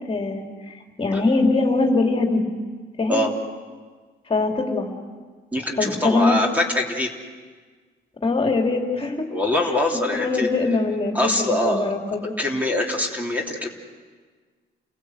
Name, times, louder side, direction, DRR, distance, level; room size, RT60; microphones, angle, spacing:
voice 1, 0.0-2.4 3.0-3.2 4.3-4.9 5.8-6.4 8.2-9.3 10.1-12.4, left 3 dB, 30° left, 1 dB, 3.1 m, -22 dB
voice 2, 5.5-7.1 9.3-10.5 11.1-11.9 12.4-13.7, left 1 dB, 10° right, 0 dB, 3.2 m, -23 dB
29.5 x 16.5 x 8.1 m, 1.5 s
cardioid pair, 90°, 20 cm